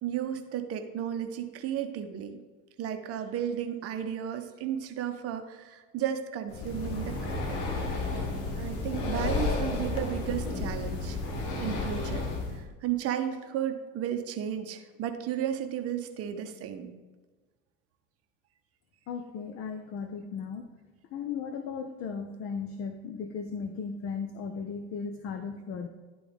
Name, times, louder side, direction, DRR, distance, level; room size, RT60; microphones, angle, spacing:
voice 1, 0.0-2.4 2.8-7.7 8.5-11.2 11.6-12.3 12.5-16.9, right 9 dB, 35° right, 7 dB, 0.8 m, -34 dB
Breathing, 6.5-12.6, left 3 dB, 60° left, 1.3 m, -32 dB
voice 2, 19.1-20.7 21.1-25.9, left 6 dB, 35° left, 8 dB, 0.5 m, -36 dB
11.0 x 3.8 x 3.5 m, 1.3 s
figure-of-eight pair, 75°, 40 cm